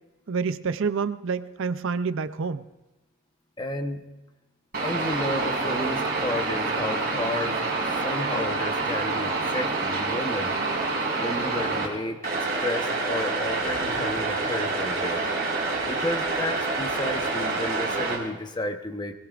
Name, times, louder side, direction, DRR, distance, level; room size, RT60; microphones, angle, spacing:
voice 1, 0.3-2.6, right 5 dB, 60° right, 13 dB, 0.5 m, -28 dB
voice 2, 3.6-4.1 4.8-7.6 8.0-10.6 11.2-12.2 12.6-15.3 15.9-19.1, left 1 dB, 20° left, 5 dB, 0.9 m, -32 dB
sound 1, 4.7-11.9 12.2-18.2, right 3 dB, 45° right, 4.8 m, -27 dB
21.5 x 20.0 x 2.5 m, 1.1 s
head